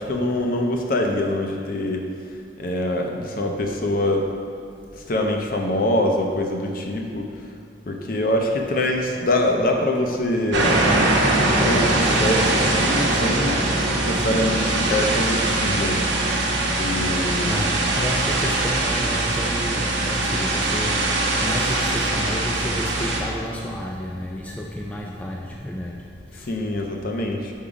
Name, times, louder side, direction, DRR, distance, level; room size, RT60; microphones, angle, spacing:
voice 1, 0.0-2.1 2.6-4.3 5.0-7.3 7.9-10.8 11.6-13.7 14.0-16.1 16.8-17.7 26.4-27.5, left 1 dB, 50° left, 2 dB, 0.6 m, -24 dB
sound 1, 10.5-23.2, right 2 dB, 70° right, 0.9 m, -22 dB
voice 2, 17.5-26.5, equal, 10° left, -2 dB, 0.3 m, -31 dB
5.5 x 4.8 x 4.9 m, 2.4 s
head